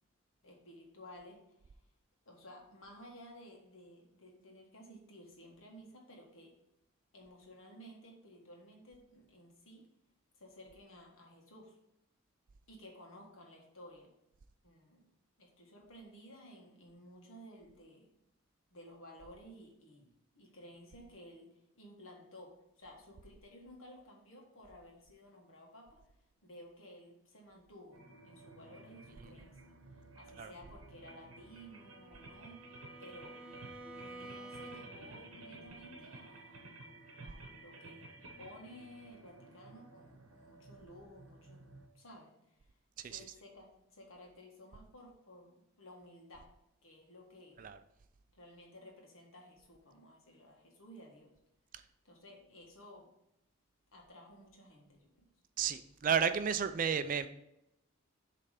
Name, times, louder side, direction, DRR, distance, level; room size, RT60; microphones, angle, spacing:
voice 1, 0.4-1.4 2.2-6.5 7.1-9.9 10.3-11.8 12.7-14.1 14.6-15.1 15.4-18.1 18.7-20.1 20.3-21.5 21.7-26.0 26.4-28.0 28.2-32.6 33.0-33.4 33.9-36.7 37.2-38.1 38.4-41.6 41.9-42.7 43.0-46.5 46.8-47.7 48.3-51.3 52.0-53.1 53.9-55.2, equal, 70° left, 0 dB, 1.6 m, -55 dB
sound 1, 27.9-41.9, right 2 dB, 75° right, 0.9 m, -54 dB
Bowed string instrument, 31.3-35.2, right 2 dB, 5° right, 0.8 m, -51 dB
voice 2, 55.6-57.3, right 7 dB, 40° right, 11 dB, 0.3 m, -32 dB
7.3 x 3.3 x 5.0 m, 0.83 s
head